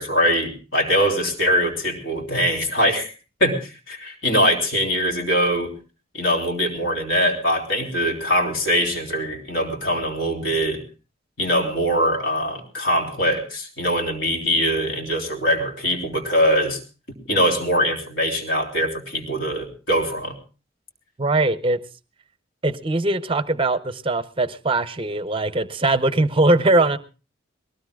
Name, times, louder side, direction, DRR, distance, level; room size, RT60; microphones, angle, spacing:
voice 1, 0.0-3.1 3.4-5.7 6.1-10.8 11.4-16.8 17.3-20.4, equal, 65° left, 3.4 m, -22 dB
voice 2, 21.2-21.8 22.6-27.0, right 2 dB, 25° right, 0.6 m, -21 dB
22.0 x 19.0 x 2.3 m
head